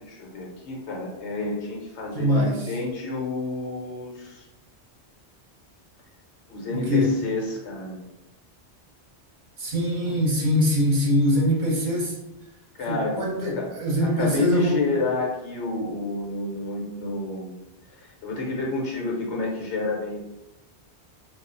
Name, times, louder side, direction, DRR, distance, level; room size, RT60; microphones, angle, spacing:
voice 1, 0.0-4.5 6.5-8.0 12.8-13.2 13.6-13.7 14.0-17.5 18.0-20.2, left 2 dB, 85° left, -2 dB, 1.1 m, -29 dB
voice 2, 2.1-2.7 6.7-7.1 9.6-12.2 12.9-14.8, left 1 dB, 50° right, -3 dB, 0.8 m, -23 dB
2.4 x 2.1 x 3.7 m, 0.92 s
omnidirectional pair, 1.1 m